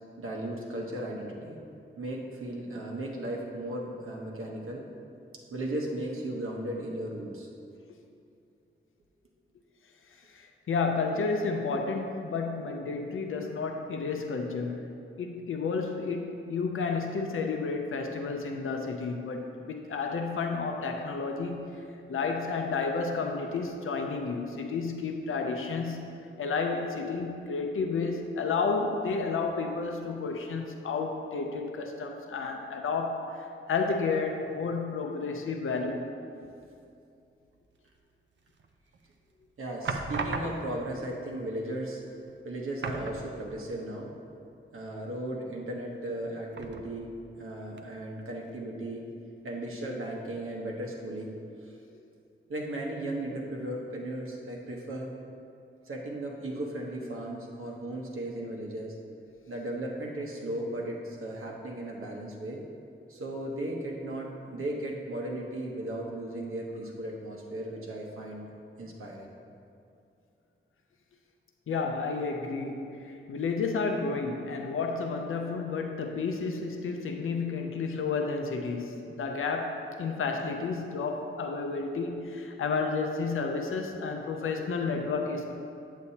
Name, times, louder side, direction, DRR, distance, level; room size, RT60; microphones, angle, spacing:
voice 1, 0.2-1.6 2.0-4.8 5.5-7.5 36.3-36.5 39.6-42.0 42.4-44.1 44.7-47.1 47.4-49.0 49.4-51.3 51.6-51.7 52.5-55.1 55.8-59.0 59.5-62.6 63.1-68.5 68.8-69.3 76.1-76.2, right 1 dB, 85° right, -1 dB, 1.1 m, -36 dB
voice 2, 10.3-21.7 22.1-26.1 26.4-36.1 71.7-85.5, left 4 dB, 80° left, 3 dB, 0.6 m, -31 dB
sound 1, 38.6-39.1 39.8-40.9 41.9-42.0 42.3-42.4 42.8-43.8 44.1-44.2 46.5-47.2 47.8-47.9, right 4 dB, 60° right, 0.5 m, -36 dB
8.3 x 8.1 x 2.8 m, 2.6 s
wide cardioid pair, 120°, 21 cm